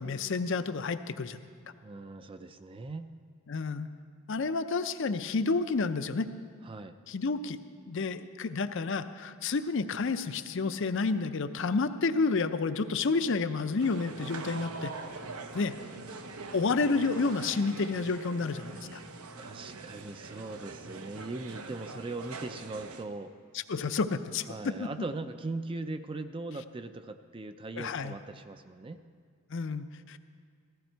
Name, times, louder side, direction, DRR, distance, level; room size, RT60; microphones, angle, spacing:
voice 1, 0.0-1.4 3.5-3.9 4.3-6.3 7.1-7.6 7.9-14.9 15.5-15.7 16.5-19.0 23.7-24.9 27.8-28.1 29.5-30.2, left 4 dB, 55° left, 10 dB, 0.5 m, -30 dB
voice 2, 1.8-3.1 6.6-6.9 15.4-15.8 16.4-16.5 19.4-23.3 24.5-29.0, right 2 dB, 25° right, 9 dB, 0.4 m, -40 dB
sound 1, 13.8-23.1, right 3 dB, 85° right, 0.9 m, -43 dB
15.0 x 14.5 x 4.5 m, 2.1 s
head